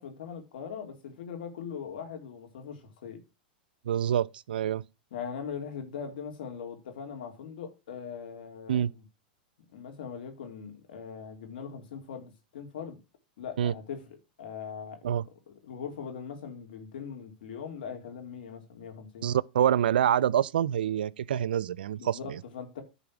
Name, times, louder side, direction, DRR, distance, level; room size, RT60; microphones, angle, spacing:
voice 1, 0.0-3.2 5.1-9.0 9.7-13.0 13.4-15.0 15.5-19.3 22.0-22.8, left 7 dB, 75° left, 3.0 m, -41 dB
voice 2, 3.8-4.8 8.7-8.9 13.6-13.7 15.0-15.2 19.2-22.4, right 10 dB, 90° right, 0.4 m, -26 dB
10.5 x 4.2 x 6.0 m
hypercardioid pair, 125°, 5 cm